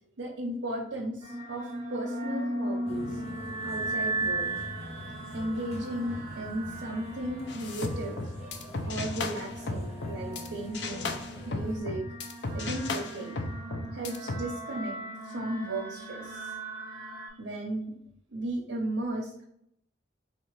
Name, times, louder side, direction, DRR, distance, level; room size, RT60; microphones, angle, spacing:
voice 1, 0.2-3.2 3.6-4.5 5.3-8.2 8.9-11.2 11.5-12.0 12.5-13.4 13.9-14.9 15.2-16.5 17.4-17.9 18.3-19.5, right 1 dB, 85° right, -4 dB, 0.8 m, -35 dB
sound 1, 1.2-17.3, right 2 dB, 20° right, 1.0 m, -37 dB
sound 2, 2.9-11.8, left 1 dB, 35° left, 0.8 m, -45 dB
sound 3, 7.5-10.5 10.7-14.4, left 3 dB, 65° left, 0.5 m, -35 dB
4.1 x 3.2 x 3.2 m, 0.73 s
head